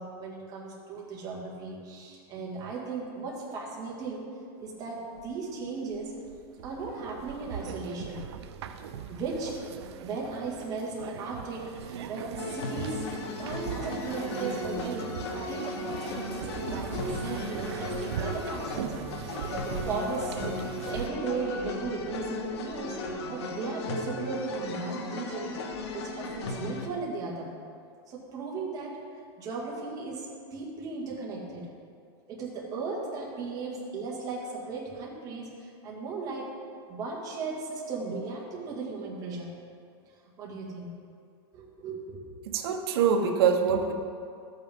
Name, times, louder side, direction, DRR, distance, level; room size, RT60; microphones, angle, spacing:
voice 1, 0.0-4.2 4.6-6.1 6.6-8.2 9.1-9.5 10.0-13.0 13.4-15.1 15.5-18.9 19.4-20.4 20.8-23.0 23.3-27.5 28.1-29.0 29.4-31.7 32.3-36.5 36.9-39.5 40.4-40.9 41.5-42.3, right 4 dB, 25° right, -3 dB, 2.0 m, -36 dB
sound 1, 4.8-4.9 5.1-21.1, right 8 dB, 90° right, 0.6 m, -39 dB
sound 2, 12.4-26.9, left 3 dB, 80° left, 1.0 m, -36 dB
voice 2, 42.5-43.9, right 6 dB, 70° right, 4 dB, 1.1 m, -24 dB
12.5 x 8.6 x 3.6 m, 2.5 s
supercardioid pair, 160°, 14 cm